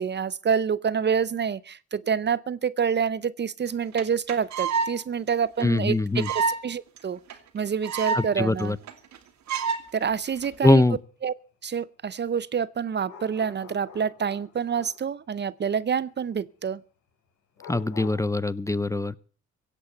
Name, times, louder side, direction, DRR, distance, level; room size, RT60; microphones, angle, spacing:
voice 1, 0.0-8.8 9.9-10.8 11.2-11.3 11.6-16.8, right 7 dB, 35° right, 0.6 m, -27 dB
sound 1, 3.7-3.8 4.0-4.1 4.3-4.9 5.3-5.4 5.6-5.7 6.2-6.6 7.0-7.1 7.3-7.4 7.6-8.3 8.6-8.7 8.9-9.2 9.5-9.8 10.4-10.7, right 5 dB, 65° right, 2.2 m, -27 dB
voice 2, 5.6-6.3 8.2-8.8 10.6-11.0 17.7-19.1, left 2 dB, 10° left, 0.6 m, -22 dB
sound 2, 13.0-15.1 17.6-18.2, left 5 dB, 75° left, 4.6 m, -45 dB
16.5 x 8.3 x 7.9 m
cardioid pair, 90°, 30 cm